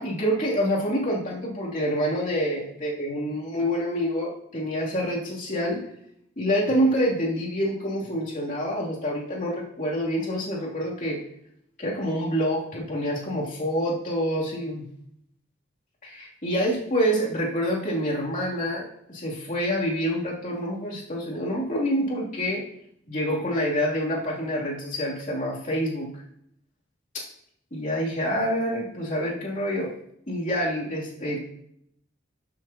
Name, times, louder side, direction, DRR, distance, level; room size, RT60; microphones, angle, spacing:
voice 1, 0.0-5.8 6.4-11.2 11.8-14.9 16.0-22.6 23.1-26.1 27.1-27.2 27.7-29.9 30.3-31.4, equal, 45° left, -5 dB, 2.8 m, -27 dB
13.0 x 7.4 x 2.9 m, 0.71 s
head